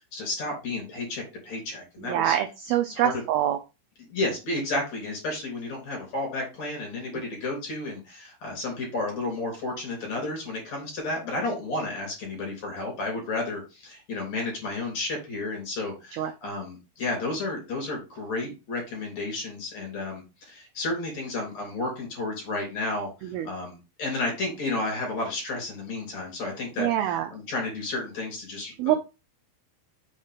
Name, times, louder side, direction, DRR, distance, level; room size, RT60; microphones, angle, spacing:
voice 1, 0.1-2.4 2.9-3.2 4.0-29.0, left 2 dB, 40° left, 1 dB, 4.3 m, -32 dB
voice 2, 2.1-3.6 16.2-16.3 23.3-23.5 26.8-27.3 28.8-29.0, right 11 dB, 85° right, 7 dB, 2.1 m, -25 dB
7.1 x 4.4 x 5.1 m, 0.28 s
omnidirectional pair, 5.2 m